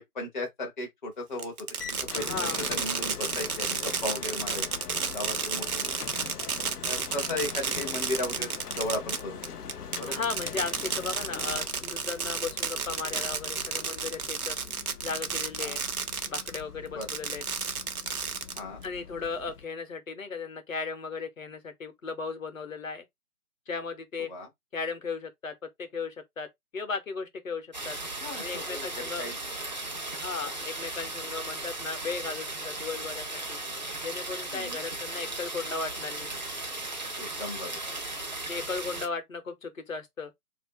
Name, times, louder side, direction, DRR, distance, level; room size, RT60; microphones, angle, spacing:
voice 1, 0.0-1.5 2.1-4.6 5.1-5.9 6.8-8.5 8.8-9.4 10.0-10.2 15.6-15.8 16.9-17.1 18.6-18.8 24.3-24.5 28.2-29.4 34.5-34.8 37.2-37.8, left 2 dB, 35° left, 0.6 m, -35 dB
Fireworks, 1.4-16.6 17.0-18.9, right 6 dB, 70° right, 0.7 m, -32 dB
sound 1, 1.8-19.7, left 7 dB, 85° left, 0.6 m, -43 dB
voice 2, 2.1-2.6 10.1-14.6 15.0-15.8 16.3-17.4 18.8-23.1 23.7-24.3 24.7-26.5 26.7-28.0 28.4-29.3 30.1-33.6 34.0-36.3 38.5-40.3, left 4 dB, 60° left, 0.9 m, -36 dB
sound 2, 27.7-39.1, right 2 dB, 30° right, 0.5 m, -36 dB
2.7 x 2.5 x 3.5 m
figure-of-eight pair, 145°, 45 cm